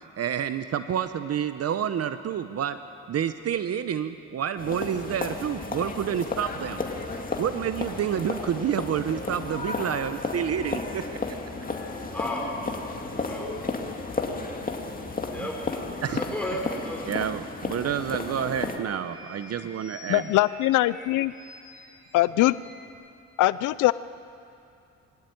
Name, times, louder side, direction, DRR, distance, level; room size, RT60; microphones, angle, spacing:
voice 1, 0.2-2.8 3.1-6.8 7.4-11.0 15.4-15.5 16.0-16.2 17.1-20.3, right 9 dB, 55° right, 11 dB, 0.8 m, -29 dB
sound 1, 4.6-18.8, left 3 dB, 30° left, 2.3 m, -33 dB
sound 2, 9.0-13.1 14.2-14.3 14.9-15.0 15.5-15.7 16.1-16.7 17.1-17.2 17.4-22.9, equal, 75° right, 5.9 m, -52 dB
voice 2, 12.1-12.5 13.2-13.5 15.3-15.5 16.1-17.1, left 1 dB, 5° left, -2 dB, 5.5 m, -33 dB
voice 3, 20.1-21.3 22.1-22.6 23.4-23.9, left 17 dB, 85° left, 17 dB, 0.5 m, -22 dB
21.5 x 16.0 x 9.3 m, 2.6 s
cardioid pair, 90°, 30 cm